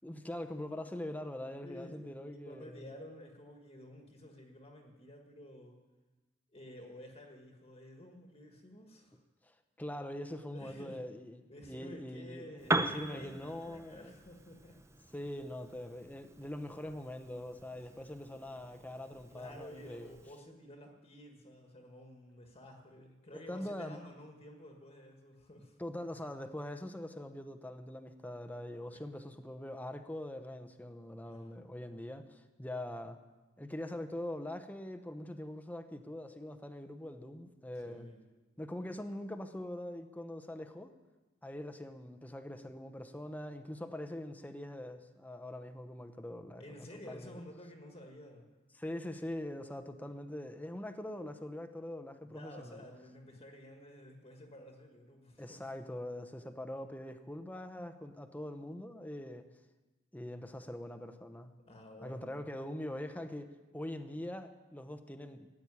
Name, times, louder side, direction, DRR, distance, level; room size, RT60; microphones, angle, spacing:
voice 1, 0.0-2.9 9.4-14.2 15.1-20.1 23.3-24.0 25.8-33.2 33.6-38.1 38.6-40.9 41.4-47.4 48.8-52.9 55.4-59.5 60.1-61.5 62.0-65.5, left 1 dB, 10° left, 8 dB, 0.9 m, -43 dB
voice 2, 1.6-5.8 6.5-9.2 10.5-11.0 11.5-14.8 17.7-18.4 19.3-25.8 28.9-29.0 29.3-29.4 31.2-32.0 37.8-38.2 46.6-48.5 52.2-55.7 61.7-62.4, left 1 dB, 30° left, 2 dB, 1.6 m, -52 dB
Piano, 12.6-20.4, right 2 dB, 15° right, 0.6 m, -41 dB
14.5 x 8.8 x 9.7 m, 1.1 s
head